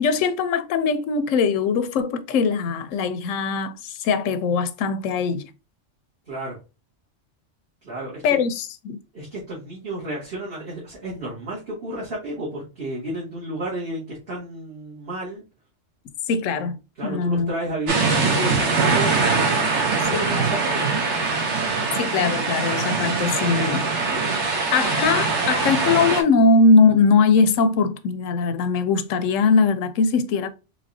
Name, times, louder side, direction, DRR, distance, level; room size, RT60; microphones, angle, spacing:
voice 1, 0.0-5.4 8.2-9.0 16.3-16.8 17.0-17.5 20.1-20.5 21.9-23.9 24.7-30.5, left 4 dB, 90° left, 1.0 m, -21 dB
voice 2, 6.3-6.6 7.8-8.4 9.1-15.4 17.0-20.8, right 1 dB, 50° right, 1.8 m, -32 dB
sound 1, 17.9-26.2, right 4 dB, 70° right, 1.3 m, -22 dB
4.1 x 3.3 x 2.6 m
omnidirectional pair, 1.3 m